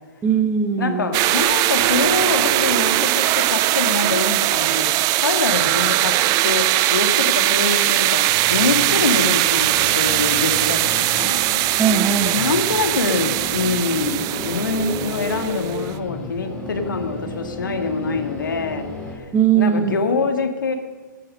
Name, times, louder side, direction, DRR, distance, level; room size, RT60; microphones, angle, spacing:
voice 1, 0.2-1.1 11.8-12.4 19.3-20.0, right 8 dB, 15° right, 7 dB, 1.3 m, -19 dB
voice 2, 0.8-4.9 5.2-6.1 6.4-6.6 6.9-11.4 12.2-19.3 19.5-20.8, left 4 dB, 80° left, 6 dB, 1.9 m, -24 dB
sound 1, 1.1-15.9, right 16 dB, 35° right, 0.6 m, -20 dB
sound 2, 8.2-19.2, left 1 dB, 10° left, 4.5 m, -33 dB
16.0 x 9.8 x 6.5 m, 1.4 s
hypercardioid pair, 115°, 11 cm